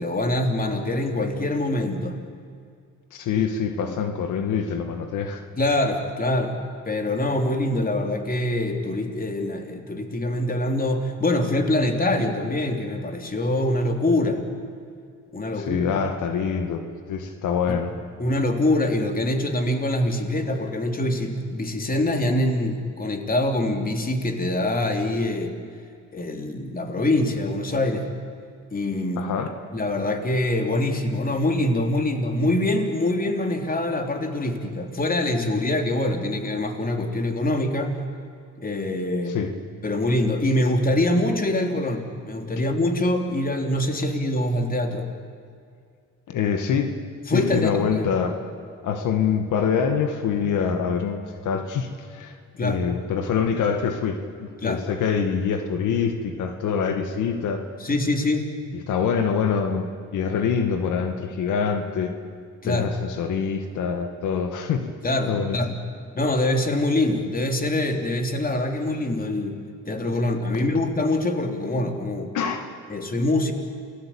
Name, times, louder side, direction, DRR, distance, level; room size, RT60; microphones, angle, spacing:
voice 1, 0.0-2.2 3.8-4.0 5.6-6.6 6.9-14.4 15.3-15.9 17.7-17.8 18.2-25.6 26.1-28.1 28.7-29.2 29.7-37.9 38.6-39.4 39.8-45.1 47.3-48.1 52.6-52.8 54.6-54.8 57.8-58.5 62.6-62.9 65.0-65.8 66.1-69.6 69.9-72.3 72.9-73.5, left 1 dB, 30° left, 4 dB, 3.4 m, -24 dB
voice 2, 3.1-5.4 15.5-16.8 17.1-17.9 29.2-29.5 39.3-39.5 46.3-47.0 47.3-48.4 48.8-57.7 58.7-62.1 62.6-64.9 65.3-65.6 72.3-72.7, left 6 dB, 80° left, 6 dB, 1.9 m, -25 dB
28.5 x 19.0 x 8.8 m, 2.2 s
cardioid pair, 90°, 30 cm